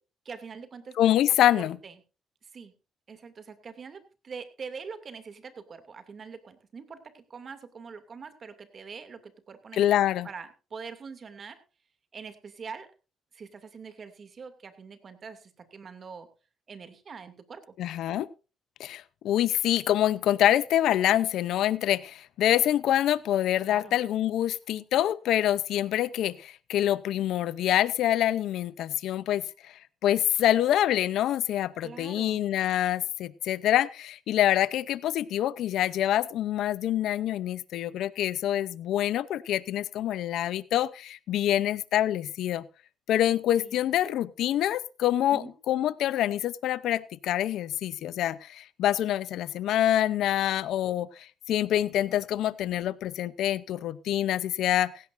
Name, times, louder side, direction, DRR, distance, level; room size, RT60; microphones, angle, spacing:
voice 1, 0.2-1.9 2.4-2.7 3.1-9.8 10.2-11.6 12.1-12.9 13.3-16.3 16.7-17.7 23.6-24.0 31.8-32.4 43.6-43.8 45.3-45.5, right 5 dB, 45° right, 9 dB, 2.6 m, -44 dB
voice 2, 1.0-1.8 9.8-10.3 17.8-18.3 18.8-42.6 43.1-54.9, left 12 dB, 80° left, 17 dB, 0.7 m, -26 dB
16.5 x 16.5 x 2.6 m, 0.33 s
cardioid pair, 90°, 0 cm